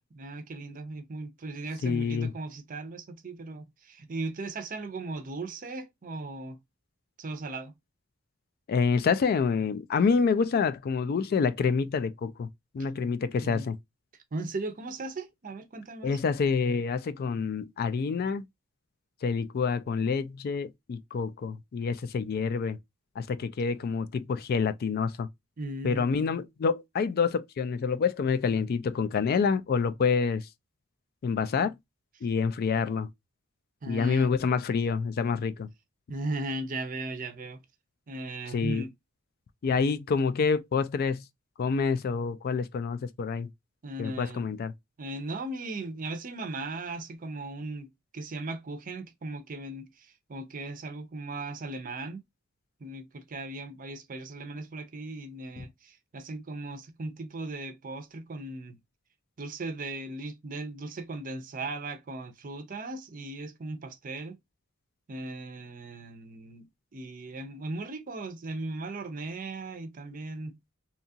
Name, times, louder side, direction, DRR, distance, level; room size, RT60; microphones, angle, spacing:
voice 1, 0.0-6.6 7.2-7.7 13.4-13.7 14.3-16.2 25.6-26.1 33.8-34.3 36.1-37.6 38.1-38.9 43.8-44.5 45.0-47.9 48.1-52.2 52.8-58.8 59.4-64.4 65.1-70.6, right 2 dB, 40° right, 0.5 m, -37 dB
voice 2, 1.8-2.3 8.7-12.5 12.7-13.8 16.0-18.5 19.2-22.8 23.2-25.3 25.8-30.5 31.2-31.8 32.2-33.1 33.9-35.7 38.5-38.9 39.6-41.2 41.6-43.5 44.0-44.7 55.6-55.7, left 5 dB, 50° left, 0.3 m, -27 dB
2.8 x 2.3 x 2.6 m
head